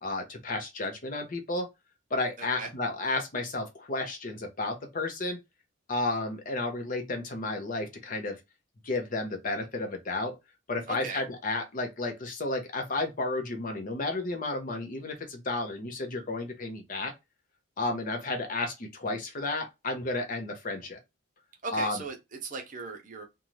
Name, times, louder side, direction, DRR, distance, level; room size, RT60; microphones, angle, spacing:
voice 1, 0.0-1.7 2.1-5.4 5.9-8.4 8.8-10.4 10.7-17.1 17.8-21.0 21.7-22.0, left 2 dB, 40° left, 0.7 m, -32 dB
voice 2, 2.4-2.7 10.9-11.2 21.6-23.3, right 3 dB, 40° right, 0.7 m, -38 dB
2.6 x 2.2 x 3.0 m
head